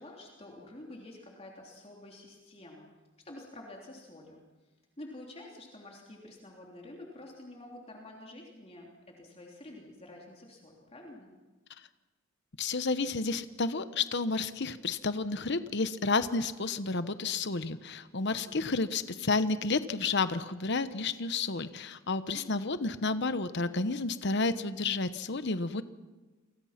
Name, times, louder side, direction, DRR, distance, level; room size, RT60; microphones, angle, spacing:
voice 1, 0.0-2.9 3.2-4.4 5.0-11.3 18.3-18.6 22.3-22.6, left 1 dB, 30° left, -1 dB, 3.3 m, -49 dB
voice 2, 12.6-25.8, left 3 dB, 55° left, 12 dB, 1.0 m, -31 dB
29.5 x 24.0 x 5.9 m, 1.2 s
head